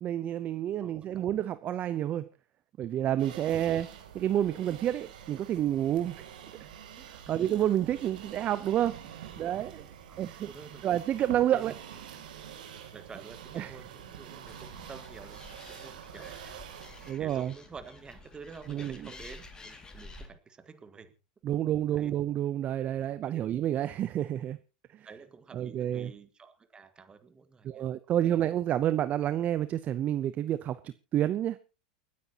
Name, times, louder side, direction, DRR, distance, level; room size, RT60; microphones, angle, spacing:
voice 1, 0.0-2.3 2.8-3.9 4.1-6.2 6.6-6.7 7.1-9.0 9.4-9.8 10.2-10.5 10.8-11.7 13.5-13.8 17.1-17.5 18.7-19.0 21.4-24.6 24.9-25.1 25.5-26.1 27.6-31.6, right 11 dB, 35° right, 14 dB, 0.6 m, -29 dB
voice 2, 0.8-1.3 7.2-7.6 8.8-9.7 10.1-10.9 11.2-11.7 12.1-12.3 12.9-16.4 17.1-21.1 21.5-21.6 21.9-22.1 22.8-22.9 23.3-23.6 25.0-27.8 28.2-28.5, right 5 dB, 20° right, 11 dB, 1.6 m, -50 dB
sound 1, 3.2-17.1, right 9 dB, 80° right, 3.0 m, -47 dB
Animal, 14.5-20.3, left 3 dB, 15° left, 2.3 m, -50 dB
29.0 x 9.7 x 2.9 m, 0.31 s
hypercardioid pair, 110°, 5 cm